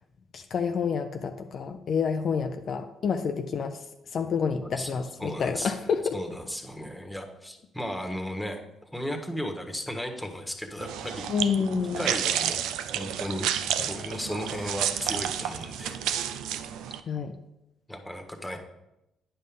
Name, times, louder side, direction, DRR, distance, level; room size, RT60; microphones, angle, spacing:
voice 1, 0.3-6.2 11.3-12.0 13.8-13.9 17.1-17.4, left 6 dB, 55° left, 6 dB, 0.5 m, -29 dB
voice 2, 4.6-4.9 5.2-5.7 6.1-8.6 8.9-11.5 12.0-12.7 12.9-13.5 13.8-16.0 17.9-18.6, equal, 5° left, 3 dB, 1.5 m, -35 dB
sound 1, 10.8-17.0, right 10 dB, 75° right, 0.4 m, -31 dB
9.5 x 5.5 x 3.7 m, 0.91 s
hypercardioid pair, 50°, 0 cm